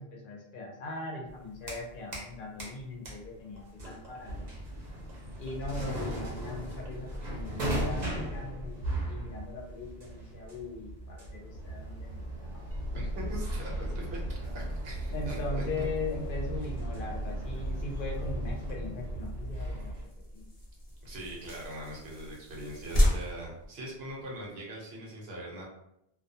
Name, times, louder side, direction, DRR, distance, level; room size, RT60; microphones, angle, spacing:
voice 1, 0.0-4.5 5.4-8.8 9.1-12.6 15.1-20.4, left 3 dB, 65° left, -1 dB, 0.7 m, -40 dB
sound 1, 1.3-2.3 2.6-20.0, right 1 dB, 50° right, 0.8 m, -37 dB
sound 2, 12.7-18.2, equal, 15° right, 0.5 m, -42 dB
voice 2, 12.9-15.8 21.0-25.6, right 1 dB, 75° right, -3 dB, 1.0 m, -42 dB
sound 3, 14.4-24.5, equal, 25° left, 0.7 m, -36 dB
2.3 x 2.2 x 2.6 m, 0.82 s
omnidirectional pair, 1.1 m